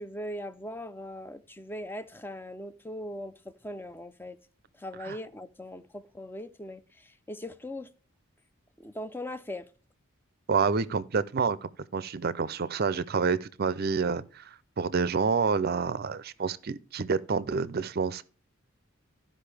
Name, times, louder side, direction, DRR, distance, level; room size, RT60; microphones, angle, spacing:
voice 1, 0.0-4.4 4.7-7.9 8.8-9.7, left 1 dB, 10° left, 0.5 m, -40 dB
voice 2, 10.5-14.4 14.8-18.2, right 5 dB, 45° right, 0.5 m, -28 dB
13.5 x 5.3 x 3.3 m
head